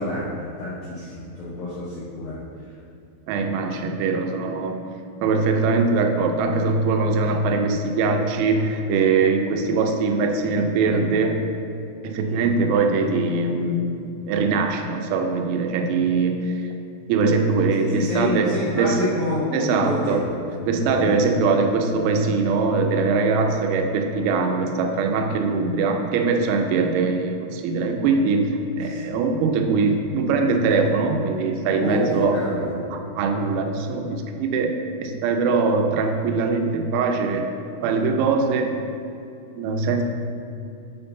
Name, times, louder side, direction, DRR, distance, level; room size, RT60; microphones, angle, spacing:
voice 1, 0.0-2.4 12.2-12.5 17.8-21.3 28.8-29.0 31.8-32.7, left 1 dB, 90° left, -9 dB, 2.0 m, -28 dB
voice 2, 3.3-4.8 5.2-11.4 12.0-16.5 17.1-19.0 19.5-20.2 20.7-32.4 32.9-34.7 35.0-37.5 37.8-38.7 39.6-40.0, right 4 dB, 90° right, 4 dB, 3.3 m, -22 dB
8.4 x 4.5 x 3.8 m, 2.7 s
omnidirectional pair, 5.9 m